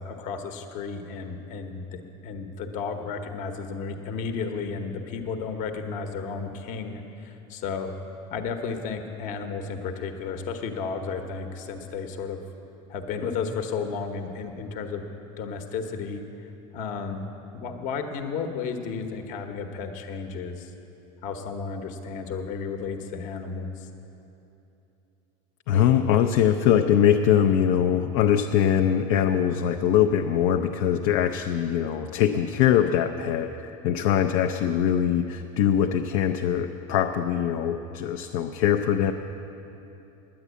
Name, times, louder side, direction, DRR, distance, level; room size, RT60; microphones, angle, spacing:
voice 1, 0.0-7.9 8.3-12.4 12.9-15.1 15.4-16.2 16.7-17.2 17.5-20.7 21.2-23.9, left 5 dB, 55° left, 6 dB, 1.0 m, -33 dB
voice 2, 25.7-39.1, left 9 dB, 70° left, 5 dB, 0.5 m, -22 dB
10.0 x 9.5 x 8.2 m, 2.9 s
supercardioid pair, 135°, 16 cm